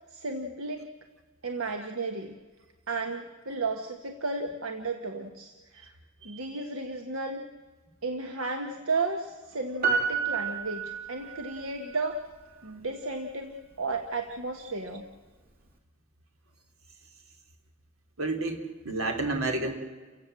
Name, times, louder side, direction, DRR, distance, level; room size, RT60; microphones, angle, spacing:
voice 1, 0.1-0.9 1.4-2.4 2.9-5.9 6.2-7.4 8.0-12.2 12.6-15.1, right 3 dB, 70° right, 5 dB, 1.4 m, -33 dB
Piano, 9.8-11.6 11.9-12.0, right 6 dB, 45° right, 2.7 m, -29 dB
voice 2, 18.2-19.7, right 2 dB, 90° right, 4 dB, 3.0 m, -30 dB
29.0 x 16.0 x 7.6 m, 1.4 s
head